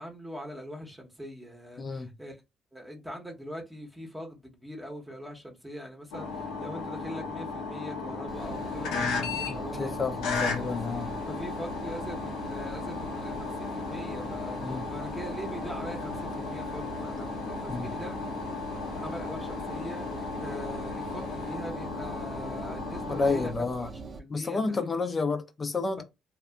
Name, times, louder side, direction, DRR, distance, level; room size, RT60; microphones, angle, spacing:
voice 1, 0.0-2.4 2.7-10.3 10.6-10.9 11.3-18.2 18.9-23.9 24.2-24.8 26.0-26.1, equal, 5° right, 0.9 m, -42 dB
sound 1, 6.1-23.5, left 4 dB, 90° left, 0.8 m, -35 dB
Engine, 8.3-24.2, right 4 dB, 40° right, 0.6 m, -43 dB
voice 2, 9.5-11.1 14.6-14.8 17.7-17.9 23.1-23.9 24.3-26.0, left 4 dB, 35° left, 0.5 m, -30 dB
2.6 x 2.3 x 2.3 m
supercardioid pair, 75°, 0 cm